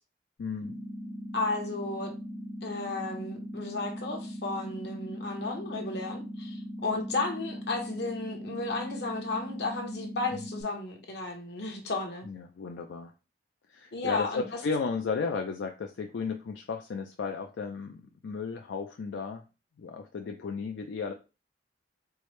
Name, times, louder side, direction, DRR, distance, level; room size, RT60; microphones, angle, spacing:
voice 1, 0.4-0.8 10.3-10.4 12.3-13.1 13.7-19.4 19.8-21.1, left 5 dB, 80° left, 4 dB, 0.4 m, -34 dB
sound 1, 0.6-10.6, equal, ahead, 0.3 m, -39 dB
voice 2, 1.3-2.1 2.6-12.3 13.9-14.4, left 3 dB, 65° left, 2 dB, 1.0 m, -33 dB
4.6 x 2.0 x 3.2 m, 0.30 s
head